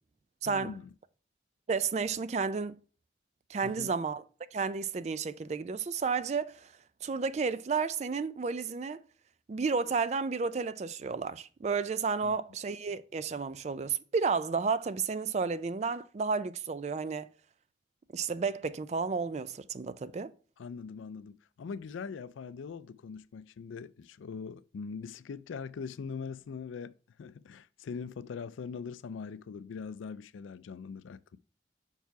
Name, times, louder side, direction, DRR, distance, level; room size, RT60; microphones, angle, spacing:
voice 1, 0.4-0.9 3.6-3.9 12.2-12.4 20.6-31.4, left 5 dB, 90° left, 0.4 m, -42 dB
voice 2, 1.7-2.7 3.5-4.2 4.5-6.7 7.0-9.0 9.5-17.3 18.1-20.3, right 5 dB, 35° right, 0.3 m, -32 dB
5.6 x 4.6 x 4.5 m
head